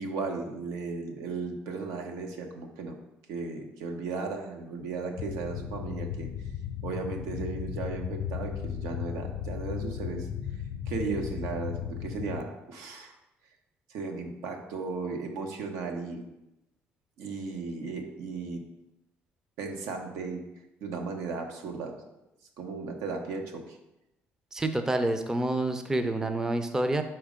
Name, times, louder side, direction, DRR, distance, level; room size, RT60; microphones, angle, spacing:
voice 1, 0.0-3.0 3.3-6.3 6.8-10.3 10.9-13.1 13.9-16.2 17.2-18.6 19.6-20.4 20.8-22.0 22.6-23.8, right 4 dB, 85° right, 3 dB, 1.0 m, -35 dB
sound 1, 5.2-12.4, left 9 dB, 75° left, 0.5 m, -35 dB
voice 2, 24.5-27.0, right 2 dB, 10° right, 8 dB, 0.5 m, -28 dB
5.4 x 4.5 x 5.0 m, 0.91 s
cardioid pair, 115°, 5 cm